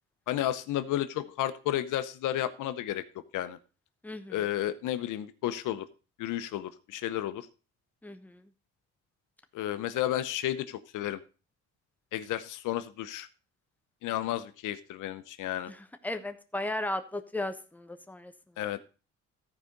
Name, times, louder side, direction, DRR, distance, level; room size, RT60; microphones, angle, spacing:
voice 1, 0.3-3.0 3.3-3.6 4.3-5.9 6.2-7.5 9.5-11.2 12.1-13.3 14.0-15.7 18.6-18.8, left 12 dB, 85° left, 12 dB, 0.8 m, -32 dB
voice 2, 4.0-4.5 8.0-8.4 15.7-18.3, left 1 dB, 5° left, 8 dB, 1.1 m, -36 dB
14.0 x 4.9 x 5.2 m, 0.34 s
cardioid pair, 90°, 30 cm